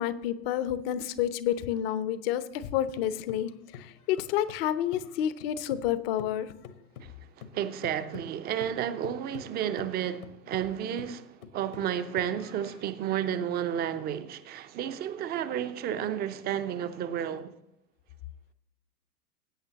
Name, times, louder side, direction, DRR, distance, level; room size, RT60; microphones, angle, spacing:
voice 1, 0.0-6.5, left 11 dB, 40° left, 0.9 m, -29 dB
sound 1, 2.5-5.9 6.2-12.9, left 7 dB, 60° left, 1.4 m, -48 dB
voice 2, 7.5-17.5, right 10 dB, 20° right, 0.7 m, -32 dB
20.0 x 9.1 x 3.0 m
figure-of-eight pair, 95°, 47 cm